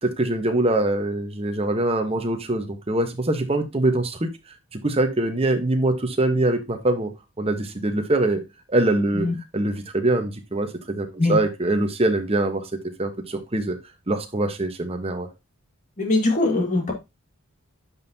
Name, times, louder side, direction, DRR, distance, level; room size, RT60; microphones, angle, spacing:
voice 1, 0.0-4.3 4.7-7.1 7.4-8.4 8.7-9.3 9.5-12.6 13.0-13.8 14.1-15.3, right 2 dB, 25° right, 6 dB, 1.0 m, -23 dB
voice 2, 16.0-16.9, left 2 dB, 35° left, 1 dB, 1.9 m, -21 dB
10.5 x 5.5 x 2.7 m, 0.23 s
head